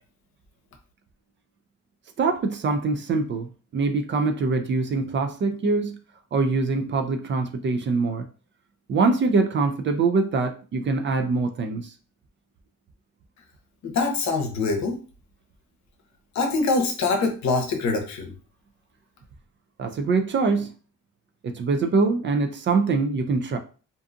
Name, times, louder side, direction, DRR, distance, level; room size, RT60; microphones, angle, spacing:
voice 1, 2.2-3.5 3.7-6.0 6.3-8.3 8.9-11.9 19.8-20.7 21.4-23.6, right 4 dB, 40° right, 0.4 m, -23 dB
voice 2, 13.8-15.0 16.3-18.3, left 3 dB, 65° left, 0.8 m, -24 dB
2.6 x 2.3 x 2.5 m
cardioid pair, 90°, 30 cm